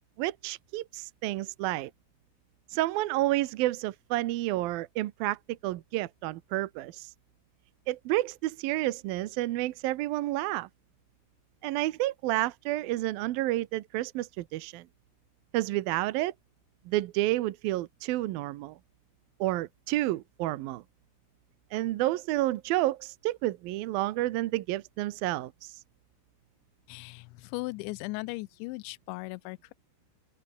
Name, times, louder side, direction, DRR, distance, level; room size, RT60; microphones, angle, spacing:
voice 1, 0.2-1.9 2.7-7.1 7.9-10.7 11.6-14.8 15.5-16.3 16.9-18.8 19.4-20.8 21.7-25.8, right 16 dB, 75° right, 2.3 m, -30 dB
voice 2, 26.9-29.7, left 23 dB, 85° left, 2.9 m, -38 dB
open air
omnidirectional pair, 5.1 m